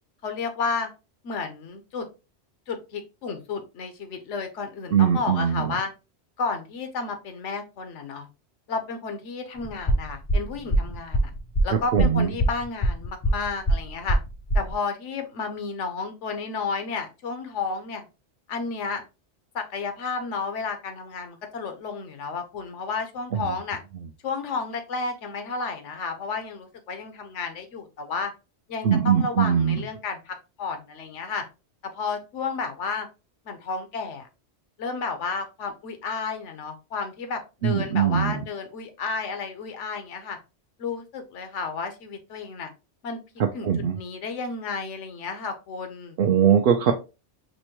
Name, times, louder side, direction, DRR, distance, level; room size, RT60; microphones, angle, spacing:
voice 1, 0.2-0.9 1.2-2.1 2.7-5.9 6.4-8.3 8.7-11.3 11.6-14.2 14.5-18.1 18.5-19.0 19.5-23.8 24.2-28.3 28.7-31.4 31.8-33.1 33.4-34.3 34.8-40.4 40.8-42.7 43.0-43.2 43.5-43.7 43.9-46.2, left 4 dB, 80° left, 6 dB, 1.1 m, -32 dB
voice 2, 4.9-5.7 11.9-12.3 23.3-23.5 28.8-29.8 37.6-38.4 43.6-44.0 46.2-46.9, right 8 dB, 60° right, 3 dB, 0.6 m, -21 dB
sound 1, 9.6-14.7, right 1 dB, 45° left, 0.3 m, -23 dB
5.2 x 2.1 x 2.9 m, 0.30 s
omnidirectional pair, 1.2 m